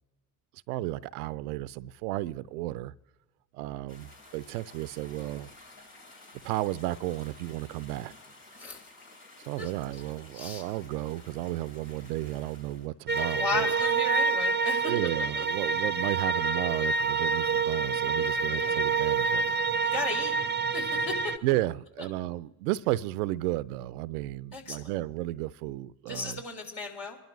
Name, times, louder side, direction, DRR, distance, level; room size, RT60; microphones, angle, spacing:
voice 1, 0.7-2.9 3.5-5.5 6.4-8.1 9.5-13.7 14.8-19.5 21.4-26.4, right 17 dB, 80° right, 0.5 m, -33 dB
sound 1, 3.9-12.9, left 2 dB, 80° left, 3.4 m, -53 dB
sound 2, 13.1-21.4, right 4 dB, 25° right, 0.6 m, -27 dB
voice 2, 13.2-14.9 15.4-15.5 18.6-18.7 19.8-20.3 20.7-21.1 24.5-24.9 26.1-27.2, left 3 dB, 65° left, 3.8 m, -35 dB
27.5 x 12.0 x 3.1 m
hypercardioid pair, 50°, 45 cm